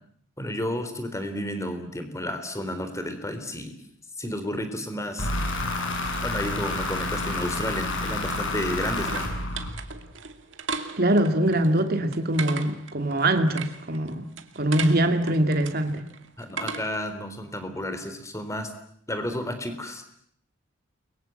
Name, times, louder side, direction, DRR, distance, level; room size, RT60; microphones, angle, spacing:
voice 1, 0.4-3.8 4.2-5.3 6.2-9.2 16.4-18.7 19.1-20.0, left 1 dB, 15° left, 3.8 m, -32 dB
sound 1, 5.2-10.1, left 2 dB, 75° left, 7.3 m, -29 dB
sound 2, 8.3-17.1, right 5 dB, 70° right, 2.3 m, -38 dB
voice 2, 11.0-14.2 14.6-16.0, right 1 dB, 50° right, 2.6 m, -23 dB
30.0 x 23.0 x 7.9 m
head